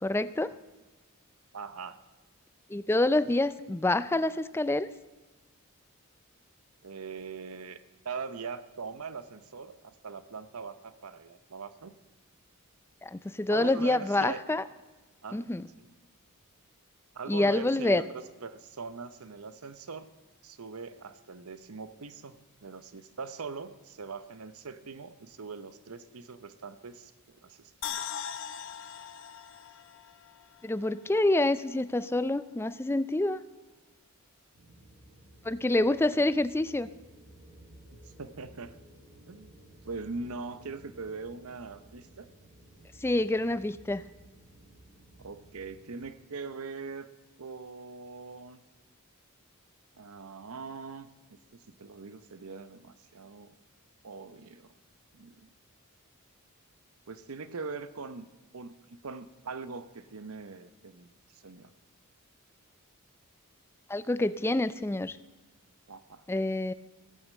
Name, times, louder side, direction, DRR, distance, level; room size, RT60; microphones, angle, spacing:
voice 1, 0.0-0.5 2.7-4.9 13.0-14.6 15.3-15.7 17.3-18.0 30.6-33.4 35.4-36.9 43.0-44.0 63.9-65.2 66.3-66.7, left 2 dB, 10° left, 15 dB, 0.4 m, -27 dB
voice 2, 1.5-2.0 6.8-12.0 13.5-14.4 15.2-15.5 15.8-15.9 17.1-20.1 20.4-28.1 37.9-38.8 39.3-39.5 39.8-42.3 45.2-47.1 47.4-48.6 50.0-51.1 51.5-53.5 54.0-54.7 55.1-55.5 57.1-58.3 58.5-61.7 65.9-66.2, right 4 dB, 75° right, 12 dB, 0.8 m, -42 dB
sound 1, 27.8-31.0 31.4-31.5, left 8 dB, 60° left, 0.8 m, -40 dB
sound 2, 34.5-46.0, right 1 dB, 45° right, 2.6 m, -55 dB
15.5 x 8.7 x 7.5 m, 1.2 s
head